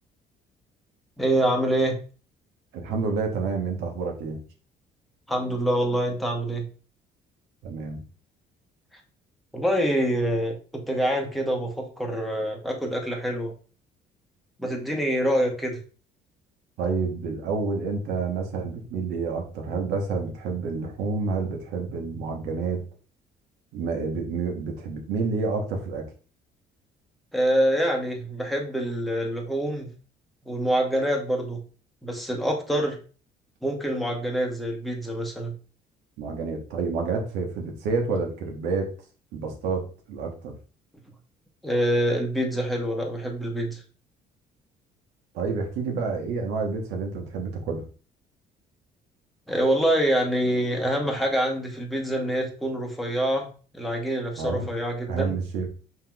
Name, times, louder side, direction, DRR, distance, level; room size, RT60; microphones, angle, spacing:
voice 1, 1.2-2.0 5.3-6.7 9.5-13.5 14.6-15.8 27.3-29.9 30.4-31.6 32.0-33.0 33.6-35.5 41.6-43.8 49.5-53.5 53.7-55.4, right 1 dB, ahead, 1 dB, 0.9 m, -25 dB
voice 2, 2.7-4.4 7.6-8.0 16.8-22.8 23.7-26.0 36.2-38.9 39.3-40.6 45.3-47.8 54.4-54.7 55.1-55.7, right 4 dB, 90° right, 2 dB, 1.0 m, -29 dB
5.6 x 2.9 x 2.3 m, 0.38 s
cardioid pair, 110°, 17 cm